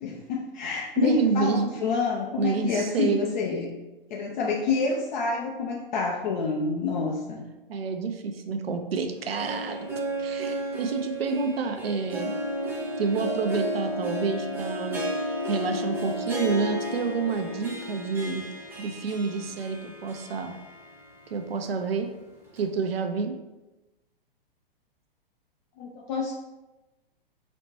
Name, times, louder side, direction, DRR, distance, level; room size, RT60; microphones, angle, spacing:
voice 1, 0.0-3.7 4.1-7.5 25.8-26.3, left 4 dB, 50° left, -1 dB, 0.6 m, -28 dB
voice 2, 1.0-1.7 2.4-3.3 7.7-9.8 10.2-12.3 13.0-15.0 15.5-18.4 18.8-20.5 21.3-22.1 22.5-23.4, right 5 dB, 80° right, 6 dB, 0.6 m, -28 dB
Harp, 9.1-21.3 21.6-21.7 22.6-22.7, equal, 5° right, 0.8 m, -33 dB
4.2 x 4.1 x 3.1 m, 1.1 s
hypercardioid pair, 115°, 29 cm